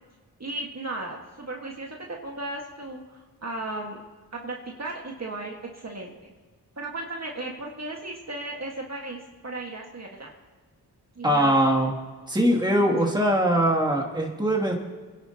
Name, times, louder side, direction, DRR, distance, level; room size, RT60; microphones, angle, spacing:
voice 1, 0.4-4.0 4.3-6.3 6.7-10.3 11.1-11.6, right 2 dB, 40° right, -1 dB, 1.8 m, -35 dB
voice 2, 11.2-11.9 12.3-14.7, right 1 dB, 10° right, -2 dB, 2.7 m, -22 dB
27.0 x 11.0 x 2.9 m, 1.4 s
cardioid pair, 60°, 39 cm